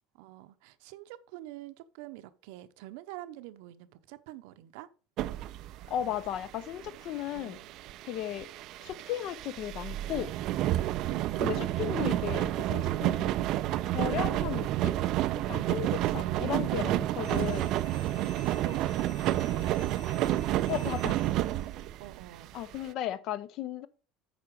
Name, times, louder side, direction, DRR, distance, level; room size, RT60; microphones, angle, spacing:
voice 1, 0.1-4.9 7.3-7.8 11.0-11.5 16.1-16.6 18.3-20.3 22.0-22.6, right 15 dB, 80° right, 0.8 m, -46 dB
sound 1, 5.2-22.8, right 14 dB, 45° right, 0.4 m, -30 dB
voice 2, 5.9-7.6 8.1-8.5 8.8-10.3 11.4-13.3 13.9-15.0 15.5-17.7 20.7-21.2 22.5-23.9, left 11 dB, 45° left, 0.6 m, -35 dB
sound 2, 17.2-21.7, left 4 dB, 90° left, 3.9 m, -53 dB
8.6 x 5.7 x 4.7 m
cardioid pair, 170°, 0 cm